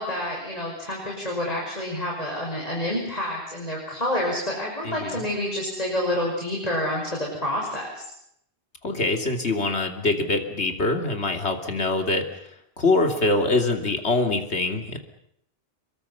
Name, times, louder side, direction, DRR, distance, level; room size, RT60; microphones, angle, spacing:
voice 1, 0.0-8.0, left 1 dB, 35° left, -2 dB, 6.0 m, -28 dB
voice 2, 4.8-5.2 8.8-12.2 12.8-15.0, left 2 dB, 85° left, 4 dB, 3.1 m, -24 dB
28.5 x 23.0 x 5.8 m, 0.72 s
omnidirectional pair, 1.1 m